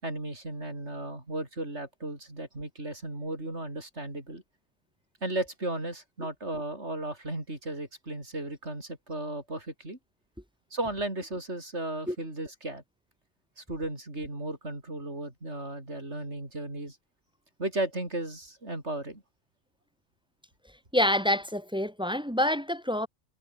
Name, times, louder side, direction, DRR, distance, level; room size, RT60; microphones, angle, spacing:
voice 1, 0.0-4.4 5.2-10.0 10.7-12.8 13.6-17.0 17.6-19.2, right 2 dB, 65° right, 6.5 m, -35 dB
voice 2, 20.9-23.1, left 1 dB, 5° right, 0.9 m, -27 dB
omnidirectional pair, 1.2 m